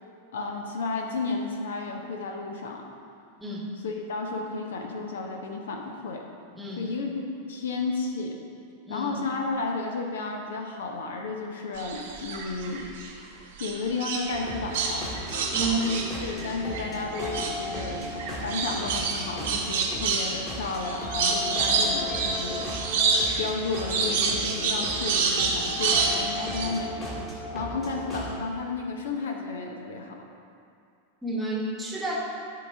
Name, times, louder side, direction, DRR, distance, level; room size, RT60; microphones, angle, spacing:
voice 1, 0.3-2.9 3.8-6.2 6.8-7.1 7.5-8.4 8.9-12.9 13.6-15.1 15.6-22.9 23.4-27.1 27.5-30.3, left 3 dB, 60° left, 2 dB, 0.7 m, -32 dB
voice 2, 3.4-3.7 6.5-6.9 8.8-9.2 15.5-15.9 31.2-32.2, right 3 dB, 10° right, -3 dB, 1.2 m, -31 dB
sound 1, 11.8-13.1 13.6-16.9 17.1-26.7, right 4 dB, 55° right, 1.0 m, -28 dB
sound 2, 14.3-28.3, left 1 dB, 25° left, 1.7 m, -36 dB
11.5 x 3.9 x 3.4 m, 2.5 s
figure-of-eight pair, 90°, 0 cm